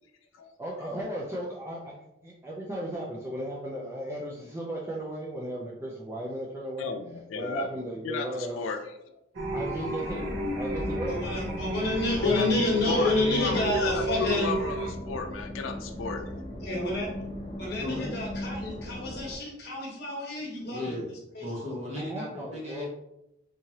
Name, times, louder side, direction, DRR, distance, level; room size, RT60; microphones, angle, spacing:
voice 1, 0.6-2.0 2.2-6.9 7.3-8.6 9.5-10.2 10.6-11.1 22.0-22.9, right 1 dB, 15° right, -3 dB, 0.4 m, -35 dB
voice 2, 6.8-7.7 8.0-8.8 12.2-12.5 12.8-16.5, left 4 dB, 90° left, 6 dB, 0.4 m, -33 dB
sound 1, 9.3-14.9, right 1 dB, 85° right, 0.8 m, -33 dB
sound 2, 10.0-19.4, left 1 dB, 30° left, 1.1 m, -39 dB
voice 3, 11.1-14.6 16.6-17.1 17.6-20.9 21.3-21.5, left 2 dB, 55° left, -2 dB, 1.2 m, -29 dB
voice 4, 17.8-18.1 20.4-21.1 21.4-22.9, left 1 dB, 35° right, -6 dB, 1.5 m, -36 dB
3.6 x 3.1 x 2.8 m, 0.86 s
head